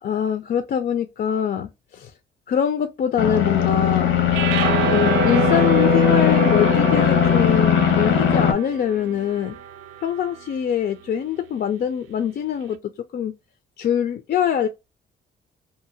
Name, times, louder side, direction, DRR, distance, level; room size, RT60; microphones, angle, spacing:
voice 1, 0.0-2.1 2.5-4.1 4.9-9.6 10.0-12.8 13.1-13.3 13.8-14.7, left 9 dB, 50° left, 0.4 m, -23 dB
sound 1, 3.2-8.5, left 8 dB, 85° left, 0.8 m, -19 dB
sound 2, 4.3-10.6, right 9 dB, 85° right, 0.4 m, -27 dB
2.7 x 2.4 x 2.7 m
cardioid pair, 90°, 20 cm